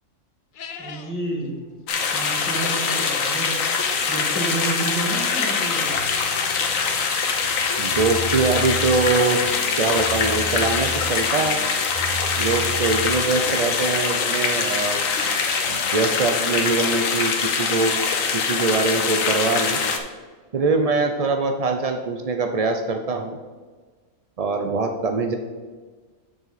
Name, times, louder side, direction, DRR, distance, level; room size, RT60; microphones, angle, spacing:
sound 1, 0.5-1.1 2.1-3.2 4.9-5.8 6.2-6.3 7.1-7.2 8.9-9.0 9.4-9.5 9.8-9.9 10.1-10.9 11.3-11.4 11.6-11.7 13.3-13.4 14.1-14.2 14.4-14.5 15.0-16.0 16.4-16.5 17.0-17.1 17.5-17.6 19.3-19.4 19.6-19.7 20.1-20.2, left 6 dB, 55° left, 0.6 m, -36 dB
voice 1, 0.8-1.6 2.1-3.6 4.1-6.0 20.6-20.8, right 2 dB, 10° right, -4 dB, 1.9 m, -30 dB
sound 2, 1.9-20.0, left 5 dB, 80° left, 1.2 m, -23 dB
sound 3, 5.9-7.0 7.3-9.1 9.4-11.1 11.4-13.8, equal, 85° right, 2.1 m, -35 dB
voice 2, 7.8-9.4 9.8-11.6 12.4-15.1 15.7-17.9 18.3-19.8 20.5-23.4 24.4-25.3, right 3 dB, 70° right, 5 dB, 0.3 m, -23 dB
6.9 x 6.6 x 4.1 m, 1.4 s
omnidirectional pair, 1.4 m